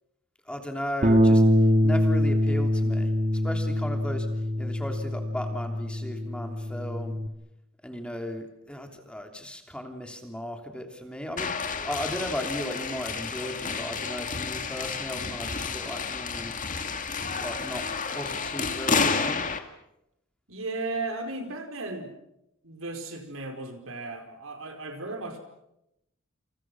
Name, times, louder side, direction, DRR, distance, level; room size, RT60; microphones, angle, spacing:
voice 1, 0.4-1.4 1.8-3.1 3.4-4.3 4.6-7.2 7.8-11.5 11.8-16.5 17.4-17.9 18.1-19.4, equal, 5° left, 4 dB, 3.2 m, -36 dB
Bass guitar, 1.0-7.3, equal, 35° right, 2.7 m, -24 dB
sound 1, 11.4-19.6, left 5 dB, 40° left, 2.1 m, -30 dB
voice 2, 20.5-22.1 22.6-25.4, right 2 dB, 75° right, 5 dB, 4.9 m, -35 dB
28.5 x 28.5 x 6.3 m, 0.85 s
head